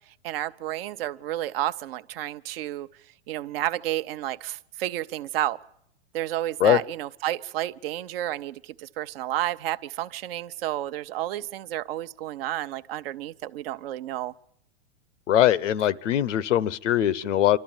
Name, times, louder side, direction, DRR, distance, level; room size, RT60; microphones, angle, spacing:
voice 1, 0.2-2.9 3.3-5.6 6.1-14.3, right 13 dB, 55° right, 14 dB, 0.8 m, -31 dB
voice 2, 15.3-17.6, left 11 dB, 85° left, 21 dB, 0.8 m, -21 dB
26.5 x 13.0 x 8.9 m, 0.74 s
hypercardioid pair, 135°, 36 cm